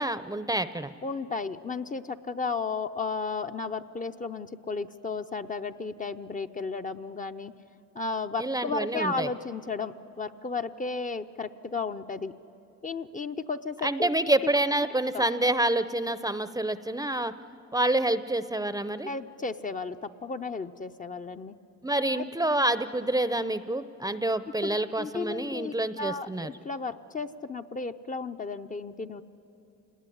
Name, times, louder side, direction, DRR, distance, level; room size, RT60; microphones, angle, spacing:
voice 1, 0.0-0.9 8.4-9.3 13.8-17.3 17.7-19.1 21.8-26.5, right 1 dB, 10° right, 13 dB, 0.7 m, -27 dB
voice 2, 1.0-7.5 7.9-12.3 12.8-14.1 15.1-15.2 19.0-21.5 22.1-22.2 24.6-29.2, left 4 dB, 25° left, 7 dB, 0.7 m, -34 dB
28.0 x 19.5 x 10.0 m, 2.9 s
cardioid pair, 90°, 30 cm